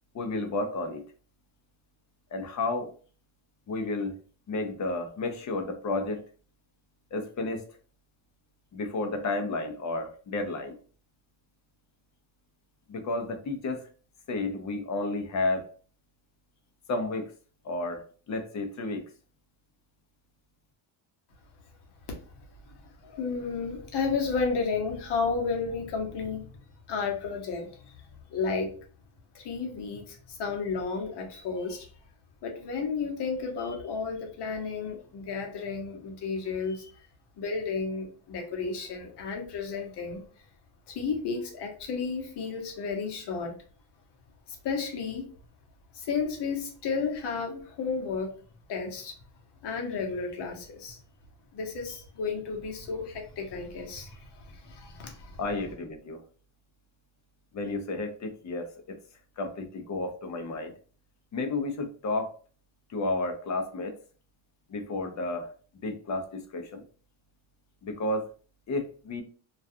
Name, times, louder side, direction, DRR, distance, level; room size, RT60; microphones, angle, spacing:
voice 1, 0.1-1.0 2.3-2.9 3.7-4.2 4.5-6.2 7.1-7.7 8.7-10.8 12.9-13.9 14.3-15.7 16.9-17.3 17.6-19.0 55.4-56.2 57.5-59.0 59.4-60.7 61.3-62.3 62.9-63.9 64.7-65.5 65.8-66.8 67.8-68.3 68.7-69.2, left 2 dB, 35° left, 6 dB, 0.5 m, -32 dB
voice 2, 22.6-26.5 26.9-28.0 28.3-28.7 29.3-31.9 32.4-36.9 37.4-40.2 40.9-43.6 44.5-45.3 45.9-48.3 48.7-49.1 49.6-51.0 51.5-55.4, left 5 dB, 55° left, 2 dB, 0.9 m, -32 dB
2.4 x 2.2 x 2.6 m, 0.40 s
cardioid pair, 125°, 50 cm